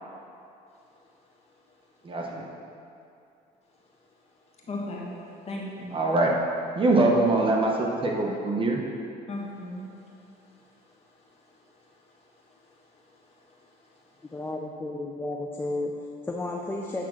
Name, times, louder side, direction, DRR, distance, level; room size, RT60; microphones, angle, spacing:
voice 1, 0.7-2.2 3.6-6.0 9.3-14.4, left 1 dB, 40° left, -3 dB, 1.6 m, -42 dB
voice 2, 2.0-2.4 5.9-6.3 6.8-8.8, right 2 dB, 30° right, -1 dB, 0.9 m, -23 dB
voice 3, 14.3-17.1, left 2 dB, 15° left, -1 dB, 0.6 m, -33 dB
8.3 x 3.6 x 6.1 m, 2.6 s
cardioid pair, 110°, 17 cm